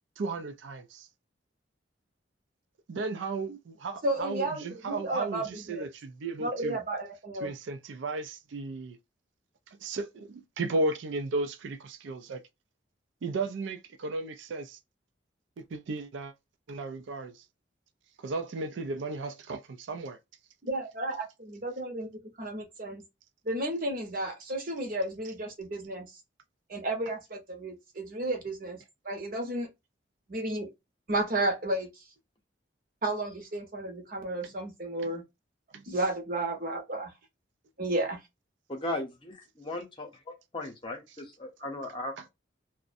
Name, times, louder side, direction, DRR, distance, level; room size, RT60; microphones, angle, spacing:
voice 1, 0.2-1.1 2.9-6.8 7.4-9.0 9.8-10.1 10.6-12.4 13.2-14.8 15.6-16.3 16.7-17.4 18.2-20.2 35.7-35.8 42.2-42.3, right 3 dB, 80° right, 0.4 m, -34 dB
voice 2, 4.0-5.8 6.4-7.5 20.6-23.0 23.5-26.1 26.7-29.7 30.3-30.7 31.1-32.0 33.0-35.2 35.9-37.1 37.8-38.2, right 1 dB, 45° right, 0.7 m, -32 dB
voice 3, 38.7-39.1 39.6-40.1 40.5-42.3, left 1 dB, 25° left, 0.7 m, -36 dB
2.5 x 2.1 x 2.4 m
head